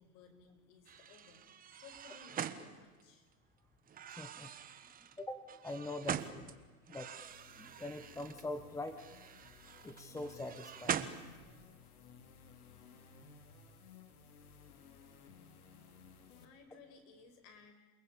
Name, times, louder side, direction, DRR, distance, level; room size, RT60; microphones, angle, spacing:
voice 1, 0.0-3.3 16.4-17.7, left 5 dB, 50° left, 6 dB, 6.2 m, -59 dB
sound 1, 0.9-3.3 3.9-6.5 6.9-8.4 8.9-11.7, right 9 dB, 20° right, 1.4 m, -44 dB
voice 2, 4.2-4.8 5.2-6.6 6.9-7.2 7.5-9.0 9.8-11.1, left 2 dB, 5° left, 8 dB, 1.4 m, -44 dB
sound 2, 7.1-16.5, left 5 dB, 75° left, 3.9 m, -58 dB
29.0 x 20.0 x 8.7 m, 1.3 s
hypercardioid pair, 125°, 45 cm